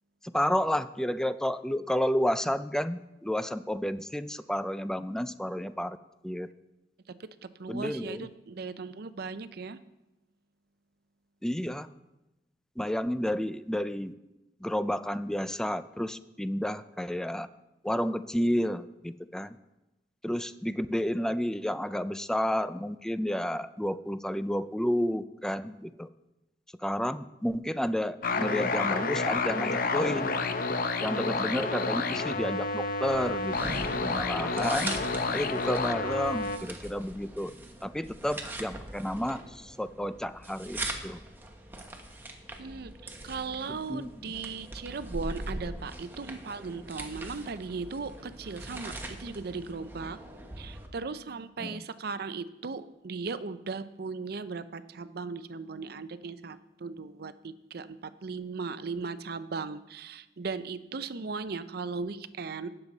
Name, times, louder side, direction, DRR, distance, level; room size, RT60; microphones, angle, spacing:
voice 1, 0.3-6.0 6.2-6.5 7.7-8.2 11.4-11.9 12.8-14.1 14.6-17.5 17.8-19.5 20.2-26.1 26.8-30.3 31.0-33.8 34.0-35.0 35.3-37.5 37.8-39.4 39.8-41.2 43.9-44.1 51.6-51.8, equal, 5° left, 13 dB, 0.3 m, -31 dB
voice 2, 7.2-9.8 42.6-50.2 50.6-62.7, right 4 dB, 60° right, 13 dB, 0.6 m, -37 dB
sound 1, 28.2-36.6, left 3 dB, 55° left, 0.7 m, -30 dB
sound 2, 33.0-50.9, right 1 dB, 10° right, 1.1 m, -41 dB
17.5 x 6.9 x 4.0 m, 0.98 s
head